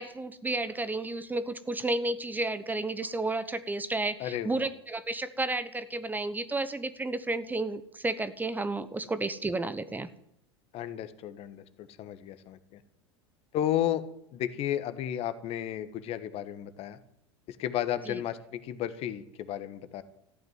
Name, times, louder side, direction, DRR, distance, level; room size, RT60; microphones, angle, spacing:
voice 1, 0.0-10.1 18.1-18.2, right 2 dB, 10° right, 14 dB, 1.1 m, -32 dB
voice 2, 4.2-4.7 10.7-12.8 13.5-14.0 14.3-17.0 17.5-20.0, left 11 dB, 45° left, 12 dB, 1.5 m, -33 dB
14.5 x 9.4 x 9.6 m, 0.75 s
figure-of-eight pair, 80°, 14 cm